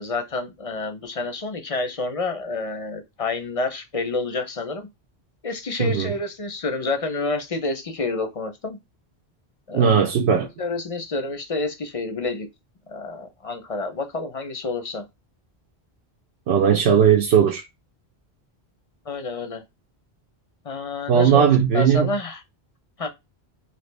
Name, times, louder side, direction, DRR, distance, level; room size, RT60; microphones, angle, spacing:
voice 1, 0.0-4.9 5.4-8.8 9.7-9.9 10.6-12.5 12.9-15.0 19.1-19.6 20.7-22.4 23.0-23.1, left 3 dB, 40° left, 0.5 m, -28 dB
voice 2, 5.8-6.1 9.7-10.5 16.5-17.6 21.1-22.1, right 8 dB, 80° right, 0.9 m, -17 dB
3.0 x 2.6 x 3.2 m
omnidirectional pair, 1.1 m